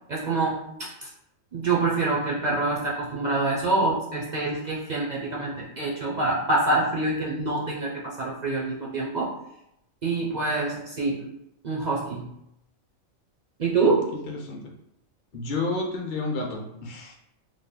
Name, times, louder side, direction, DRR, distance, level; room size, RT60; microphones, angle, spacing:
voice 1, 0.1-1.1 1.5-9.3 10.0-11.3 11.6-12.3 13.6-14.1, right 3 dB, 55° right, -4 dB, 0.5 m, -26 dB
voice 2, 13.8-14.7 15.3-17.2, left 3 dB, 45° left, 0 dB, 0.7 m, -31 dB
3.2 x 2.1 x 3.7 m, 0.78 s
omnidirectional pair, 1.4 m